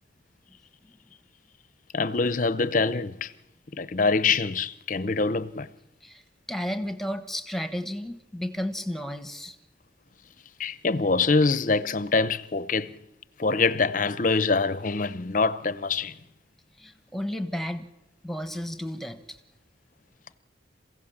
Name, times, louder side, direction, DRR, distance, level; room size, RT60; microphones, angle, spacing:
voice 1, 1.9-3.3 3.8-5.7 10.6-12.9 13.4-16.1, left 4 dB, 40° left, 0.7 m, -24 dB
voice 2, 6.5-9.6 16.8-17.9 18.2-19.4, equal, ahead, 1.2 m, -33 dB
28.0 x 16.0 x 7.3 m
head